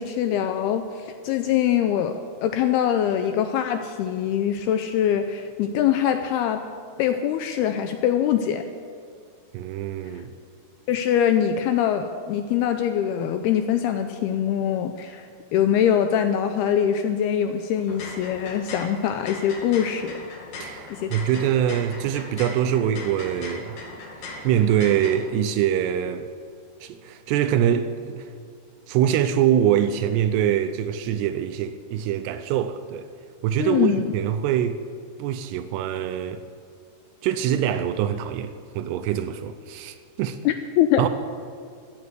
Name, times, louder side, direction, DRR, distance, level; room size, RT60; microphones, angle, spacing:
voice 1, 0.0-6.6 7.0-8.6 10.1-10.2 10.9-20.2 20.9-21.1 33.6-34.1 40.5-41.0, left 9 dB, 80° left, 2.3 m, -23 dB
voice 2, 9.5-10.3 20.6-23.7 24.4-26.3 26.8-28.3 28.9-33.1 33.4-34.8 35.2-36.4 37.2-40.4 41.0-41.1, right 10 dB, 80° right, 2.6 m, -24 dB
sound 1, 17.8-25.2, left 2 dB, 50° left, 2.9 m, -39 dB
14.5 x 9.6 x 8.0 m
omnidirectional pair, 5.1 m